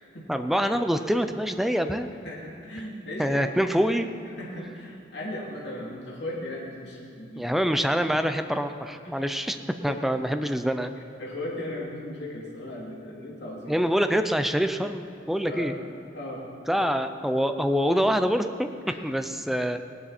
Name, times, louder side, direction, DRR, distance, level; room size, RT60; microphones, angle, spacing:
voice 1, 0.3-2.1 3.2-4.1 7.4-9.6 9.8-10.9 13.7-15.8 16.7-18.7 19.0-19.8, equal, ahead, 7 dB, 0.4 m, -25 dB
voice 2, 2.2-3.6 4.4-7.6 9.0-9.3 9.8-10.0 11.2-13.9 15.4-15.7 16.1-16.4 18.8-19.0, left 1 dB, 60° left, -4 dB, 3.2 m, -37 dB
18.0 x 11.0 x 4.4 m, 2.6 s
head